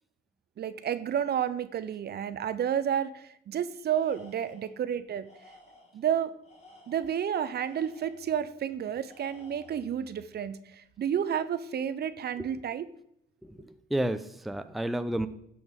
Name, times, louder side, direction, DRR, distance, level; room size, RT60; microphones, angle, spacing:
voice 1, 0.6-5.3 5.9-6.3 6.9-12.9, right 9 dB, 55° right, 13 dB, 0.6 m, -31 dB
Tools, 3.9-4.8 5.2-6.0 6.4-8.3 9.0-10.0, left 1 dB, 35° left, 2.6 m, -56 dB
voice 2, 13.4-15.3, right 1 dB, ahead, 10 dB, 0.5 m, -31 dB
11.0 x 6.2 x 3.7 m, 0.75 s
cardioid pair, 90°, 20 cm